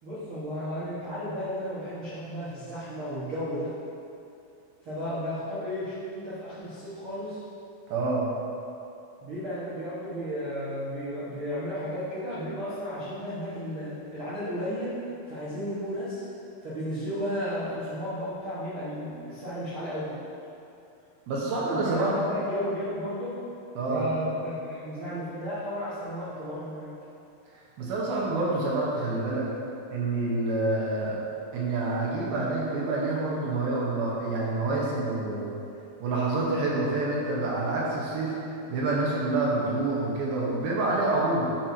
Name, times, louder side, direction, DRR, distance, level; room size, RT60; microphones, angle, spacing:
voice 1, 0.0-3.7 4.8-7.4 9.2-14.9 15.3-16.2 16.6-20.2 21.7-23.4 23.9-26.9, equal, 55° right, -12 dB, 1.4 m, -33 dB
voice 2, 7.9-8.3 21.3-22.1 23.8-24.1 27.8-29.5 29.9-31.2 31.5-35.6 36.0-38.4 38.7-41.5, right 2 dB, 75° right, -5 dB, 2.8 m, -27 dB
10.0 x 6.1 x 2.7 m, 2.7 s
omnidirectional pair, 4.5 m